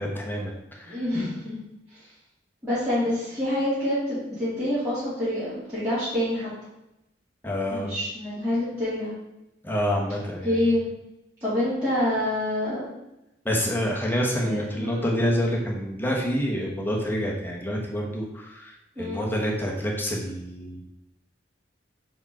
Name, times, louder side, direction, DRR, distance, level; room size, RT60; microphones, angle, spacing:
voice 1, 0.0-1.0 7.4-7.9 9.6-10.6 13.4-20.8, equal, 10° left, -2 dB, 1.2 m, -27 dB
voice 2, 0.9-1.6 2.6-6.5 7.7-9.1 10.4-10.9 11.4-12.9 14.3-15.1 19.0-19.3, left 1 dB, 15° right, -14 dB, 2.4 m, -27 dB
4.9 x 4.3 x 5.9 m, 0.89 s
head